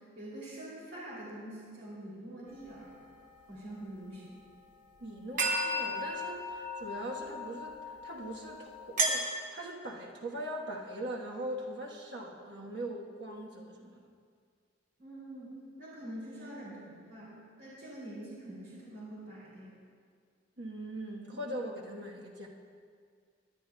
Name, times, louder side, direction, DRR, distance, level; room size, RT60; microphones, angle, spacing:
voice 1, 0.0-3.0 3.5-4.4 15.0-19.8, right 1 dB, 75° right, -8 dB, 2.9 m, -45 dB
sound 1, 2.6-2.7 5.4-9.1, right 1 dB, 40° right, 1.0 m, -34 dB
voice 2, 5.0-7.8 8.0-9.2 9.5-14.1 20.6-22.5, right 1 dB, 60° right, -1 dB, 1.2 m, -41 dB
18.5 x 10.5 x 2.3 m, 2.1 s
head